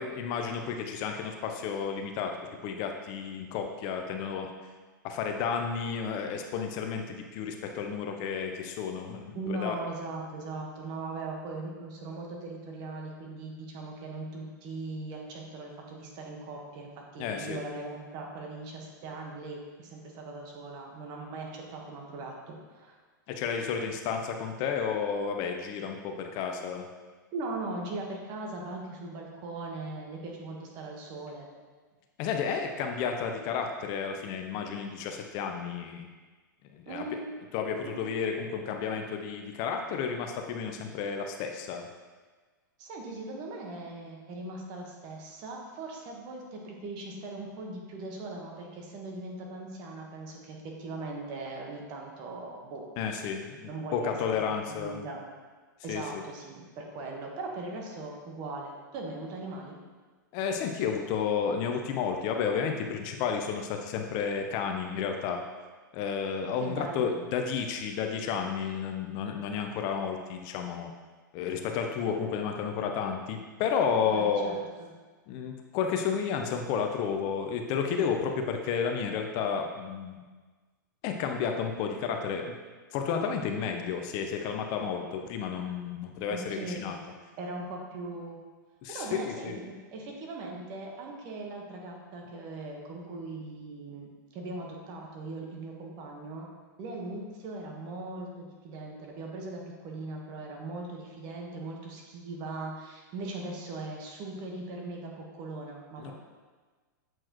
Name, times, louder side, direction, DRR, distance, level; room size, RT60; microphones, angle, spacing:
voice 1, 0.0-4.5 5.0-9.8 17.2-17.6 23.3-26.9 32.2-36.1 36.7-37.1 37.5-41.9 53.0-55.0 55.9-56.2 60.3-65.4 65.9-70.9 71.3-74.6 75.3-80.2 81.0-82.5 82.9-87.0 88.8-89.6 106.0-106.1, left 6 dB, 45° left, 4 dB, 0.6 m, -32 dB
voice 2, 9.3-23.0 27.3-31.5 36.9-37.2 37.8-38.0 42.8-52.8 53.6-54.4 54.7-55.2 55.8-59.8 66.6-67.2 74.1-74.9 86.3-86.9 87.4-88.4 88.9-96.5 96.8-106.1, right 2 dB, 40° right, 0 dB, 1.3 m, -39 dB
7.7 x 4.5 x 3.0 m, 1.4 s
hypercardioid pair, 120°, 11 cm